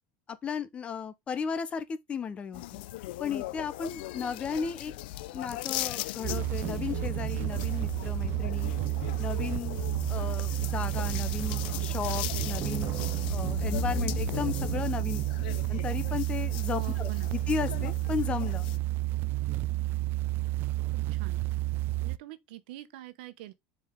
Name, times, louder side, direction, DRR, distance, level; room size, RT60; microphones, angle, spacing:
voice 1, 0.4-2.8 3.2-4.9 5.3-8.7 9.2-9.8 10.1-13.0 13.3-15.3 15.7-18.7, left 6 dB, 20° left, 0.8 m, -35 dB
sound 1, 2.5-18.8, left 15 dB, 80° left, 0.4 m, -38 dB
sound 2, 6.2-22.2, right 18 dB, 40° right, 0.4 m, -31 dB
voice 2, 16.8-17.4 20.8-21.4 22.0-23.5, right 15 dB, 80° right, 1.0 m, -45 dB
6.9 x 4.7 x 3.6 m
supercardioid pair, 155°, 5 cm